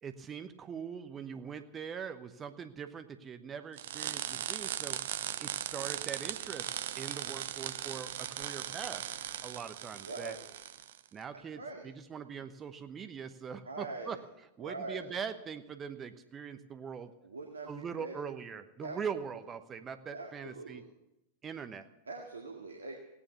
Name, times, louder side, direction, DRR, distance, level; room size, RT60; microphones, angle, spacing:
voice 1, 0.0-5.0 5.4-6.7 7.0-9.0 9.4-10.4 11.1-14.2 14.6-17.1 17.7-20.8 21.4-21.9, right 7 dB, 25° right, 10 dB, 1.0 m, -42 dB
sound 1, 3.8-11.0, right 11 dB, 60° right, 0.7 m, -38 dB
voice 2, 10.0-10.4 11.6-11.9 13.7-14.2 14.6-15.2 17.2-18.2 18.8-19.2 20.1-20.9 22.1-22.9, right 3 dB, 75° right, 1 dB, 2.0 m, -43 dB
17.0 x 9.9 x 8.1 m, 0.89 s
figure-of-eight pair, 90°, 0 cm